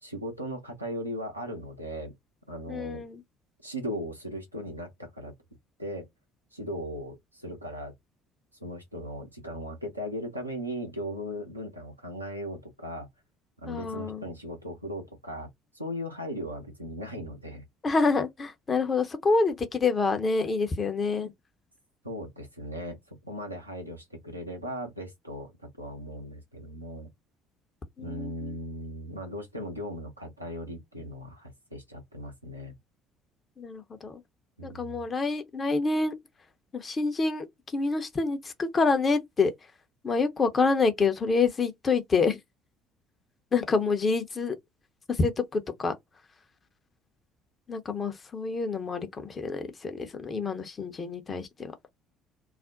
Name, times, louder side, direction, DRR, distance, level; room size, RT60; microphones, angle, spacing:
voice 1, 0.0-2.1 2.5-3.0 3.6-5.3 5.8-6.1 6.5-7.9 8.6-13.1 13.6-15.5 15.7-17.7 22.0-27.1 28.0-32.8 34.6-35.1, equal, 85° right, 0.7 m, -38 dB
voice 2, 2.7-3.2 13.7-14.2 17.8-21.3 28.0-28.5 33.6-34.2 34.6-36.1 36.7-39.5 40.0-42.4 43.5-44.6 45.1-45.9 47.7-51.7, left 4 dB, 30° left, 0.7 m, -27 dB
2.5 x 2.0 x 3.7 m
figure-of-eight pair, 55°, 0 cm